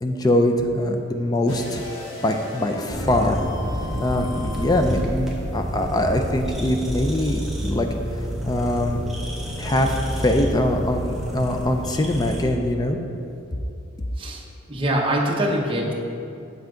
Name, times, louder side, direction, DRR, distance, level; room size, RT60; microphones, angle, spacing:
voice 1, 0.0-1.8 2.2-3.4 4.0-7.9 8.4-9.0 9.6-13.0, left 1 dB, 20° left, 4 dB, 0.4 m, -23 dB
sound 1, 1.5-5.0, left 1 dB, 80° left, 1.4 m, -34 dB
sound 2, 2.9-12.4, equal, ahead, 0.9 m, -29 dB
voice 2, 14.7-15.9, right 1 dB, 25° right, -1 dB, 0.8 m, -23 dB
7.6 x 5.8 x 3.8 m, 2.7 s
head